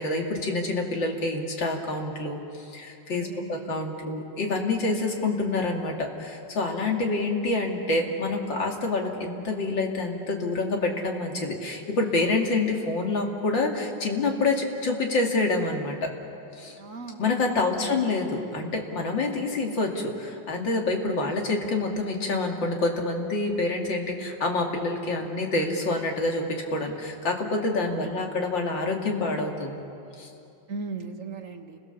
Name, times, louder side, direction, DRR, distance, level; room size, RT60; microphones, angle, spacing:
voice 1, 0.0-2.4 2.7-16.0 16.6-16.8 17.2-26.5 26.7-29.8 30.2-30.3, left 2 dB, 75° left, 1 dB, 3.2 m, -27 dB
voice 2, 3.1-3.8 5.0-5.4 16.8-17.2 17.6-18.1 27.8-28.3 30.7-31.8, right 4 dB, 45° right, 4 dB, 1.6 m, -39 dB
30.0 x 22.5 x 7.1 m, 2.7 s
omnidirectional pair, 2.0 m